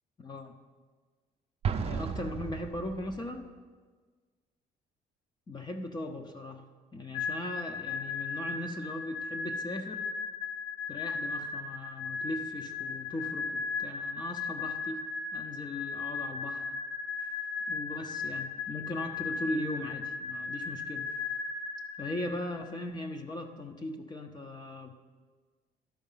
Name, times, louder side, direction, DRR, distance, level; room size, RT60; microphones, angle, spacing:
voice 1, 0.2-0.5 1.8-3.5 5.5-6.6 6.9-10.0 10.9-15.0 15.3-16.7 17.7-21.1 22.0-24.9, left 1 dB, 25° left, 5 dB, 0.7 m, -38 dB
Explosion, 1.6-3.4, right 6 dB, 35° right, 0.5 m, -34 dB
sound 1, 7.1-22.7, left 4 dB, 50° left, 1.4 m, -36 dB
11.5 x 4.5 x 5.6 m, 1.4 s
cardioid pair, 110°, 17 cm